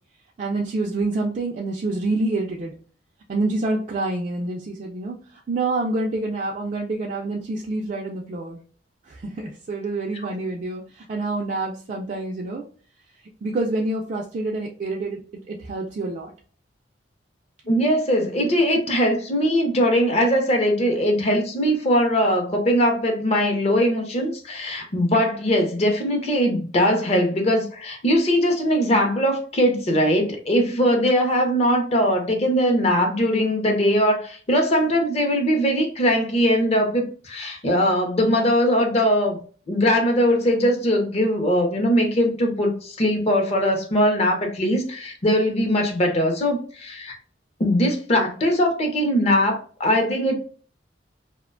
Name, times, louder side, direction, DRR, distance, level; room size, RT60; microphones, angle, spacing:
voice 1, 0.4-2.7 3.3-8.6 9.0-12.6 13.4-16.3, right 2 dB, 40° right, 0.3 m, -27 dB
voice 2, 17.7-39.4 39.7-47.2 47.6-50.4, equal, 35° left, 0.5 m, -21 dB
2.4 x 2.1 x 2.4 m
head